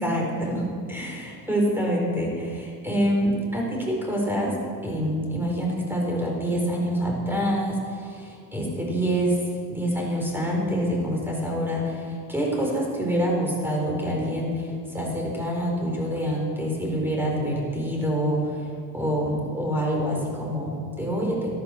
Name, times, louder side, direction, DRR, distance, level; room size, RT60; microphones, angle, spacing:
voice 1, 0.0-4.5 4.8-9.4 9.7-18.6 18.9-21.5, equal, 5° right, -2 dB, 4.4 m, -26 dB
13.0 x 11.0 x 6.0 m, 2.1 s
cardioid pair, 105°, 41 cm